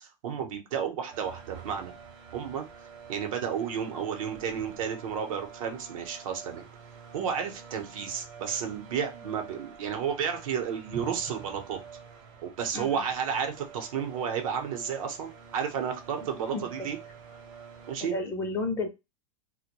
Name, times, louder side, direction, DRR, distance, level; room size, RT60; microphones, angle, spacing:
voice 1, 0.0-1.9 2.3-2.7 3.1-6.7 7.1-11.8 12.4-17.0 17.9-18.1, right 7 dB, 80° right, 5 dB, 0.8 m, -32 dB
sound 1, 1.1-18.0, right 7 dB, 50° right, 0.7 m, -47 dB
voice 2, 12.7-13.0 16.5-16.7 18.0-18.9, left 3 dB, 15° left, 4 dB, 0.4 m, -32 dB
2.2 x 2.1 x 2.9 m, 0.24 s
supercardioid pair, 145°, 17 cm